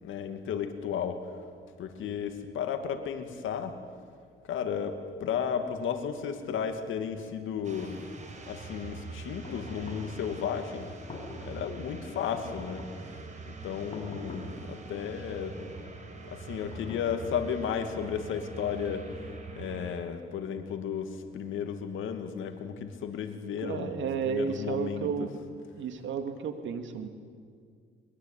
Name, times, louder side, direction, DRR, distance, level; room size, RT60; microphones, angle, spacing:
voice 1, 0.0-1.3 1.8-3.8 4.5-8.0 8.5-10.9 11.4-12.9 13.5-15.6 16.3-19.1 19.6-25.1, left 7 dB, 80° left, 7 dB, 2.4 m, -34 dB
sound 1, 7.6-20.0, right 3 dB, 35° right, 5.2 m, -44 dB
sound 2, 9.4-10.2 10.9-11.6 12.3-13.1 13.9-14.7 15.4-16.0 16.7-17.6, left 3 dB, 35° left, 7.2 m, -45 dB
voice 2, 23.6-25.3 25.7-27.1, right 6 dB, 75° right, 8 dB, 2.4 m, -32 dB
23.0 x 22.0 x 9.2 m, 2.1 s
cardioid pair, 90°, 20 cm